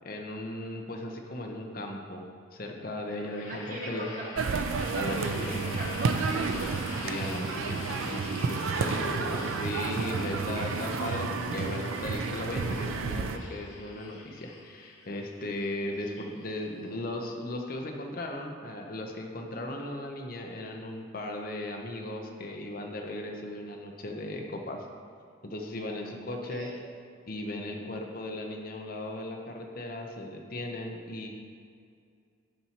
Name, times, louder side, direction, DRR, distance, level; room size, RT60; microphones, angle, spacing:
voice 1, 0.0-4.1 4.8-5.6 7.0-24.9 25.4-26.7 27.3-31.3, left 1 dB, 45° left, 2 dB, 0.7 m, -37 dB
sound 1, 3.1-16.9, left 2 dB, 90° left, 1.0 m, -45 dB
voice 2, 3.5-4.3 5.2-6.7 8.7-9.5 16.0-16.1 26.3-26.8, right 2 dB, 40° right, -1 dB, 0.9 m, -40 dB
sound 2, 4.3-13.4, right 4 dB, 80° right, 0.4 m, -31 dB
11.5 x 4.2 x 2.9 m, 2.3 s
head